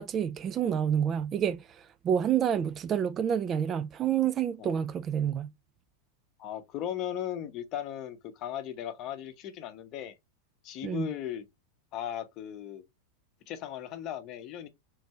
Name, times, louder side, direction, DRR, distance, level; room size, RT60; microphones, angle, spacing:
voice 1, 0.0-5.5 10.8-11.1, right 8 dB, 25° right, 0.3 m, -28 dB
voice 2, 6.4-10.2 10.6-11.4 11.9-12.8 13.5-14.7, left 10 dB, 40° left, 0.7 m, -37 dB
3.8 x 2.6 x 4.2 m
figure-of-eight pair, 90°, 0 cm